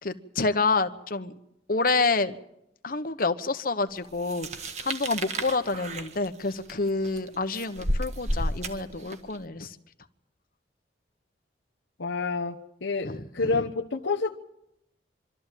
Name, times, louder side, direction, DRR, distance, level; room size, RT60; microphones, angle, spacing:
voice 1, 0.0-1.3 1.7-2.4 2.8-4.5 4.8-9.8 13.0-13.6, left 3 dB, 50° left, 9 dB, 1.1 m, -28 dB
sound 1, 4.2-9.4, right 1 dB, 35° right, 1.7 m, -32 dB
voice 2, 12.0-12.5 12.8-14.3, left 4 dB, 80° left, 3 dB, 1.1 m, -28 dB
25.0 x 13.5 x 9.1 m, 0.82 s
head